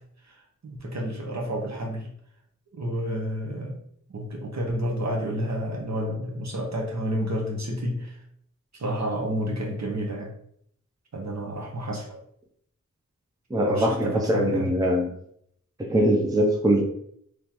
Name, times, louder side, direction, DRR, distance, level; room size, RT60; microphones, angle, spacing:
voice 1, 0.3-2.1 2.7-3.8 4.1-8.2 8.7-10.3 11.1-12.2 13.6-14.7, equal, 55° right, 0 dB, 1.0 m, -30 dB
voice 2, 13.5-15.1 15.9-16.8, equal, 10° right, 1 dB, 0.6 m, -22 dB
3.6 x 3.1 x 2.9 m, 0.68 s
wide cardioid pair, 80°, 32 cm